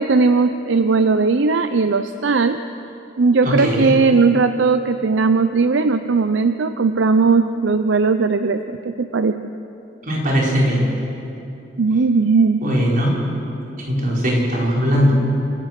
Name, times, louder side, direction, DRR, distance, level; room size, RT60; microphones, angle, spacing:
voice 1, 0.0-2.6 3.2-9.4 11.8-12.6, right 4 dB, 75° right, 10 dB, 0.6 m, -17 dB
voice 2, 3.4-3.9 10.0-10.8 12.6-13.1 13.8-15.2, equal, 50° right, -3 dB, 4.8 m, -19 dB
28.5 x 15.5 x 6.1 m, 2.9 s
head